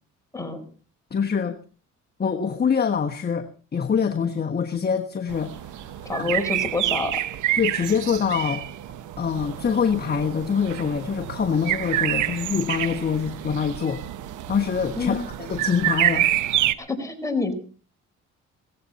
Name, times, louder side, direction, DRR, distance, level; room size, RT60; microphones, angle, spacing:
voice 1, 1.1-1.6 2.2-5.6 6.2-6.3 7.6-8.7 9.2-14.0 14.5-15.2 15.5-16.3, left 6 dB, 30° left, 5 dB, 1.3 m, -24 dB
sound 1, 5.3-16.7, right 13 dB, 80° right, 1.1 m, -28 dB
voice 2, 6.0-7.2 14.9-15.2 16.8-17.5, left 3 dB, 10° left, 4 dB, 4.5 m, -27 dB
17.5 x 15.0 x 4.2 m, 0.40 s
cardioid pair, 90°, 30 cm